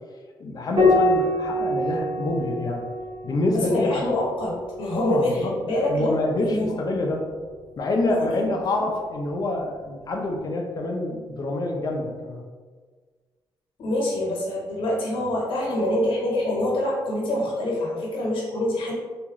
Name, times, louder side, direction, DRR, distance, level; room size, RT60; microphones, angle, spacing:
voice 1, 0.4-2.9 3.2-4.1 4.9-5.5 5.9-7.2 7.8-12.5, left 2 dB, 50° left, 0 dB, 0.6 m, -26 dB
Piano, 0.8-5.6 7.3-8.1, left 1 dB, 70° right, 1.1 m, -26 dB
voice 2, 3.5-6.1 6.4-6.8 8.2-8.4 8.8-8.9 13.8-18.9, left 1 dB, 85° left, -4 dB, 1.2 m, -26 dB
3.6 x 2.5 x 3.0 m, 1.5 s
cardioid pair, 130°, 9 cm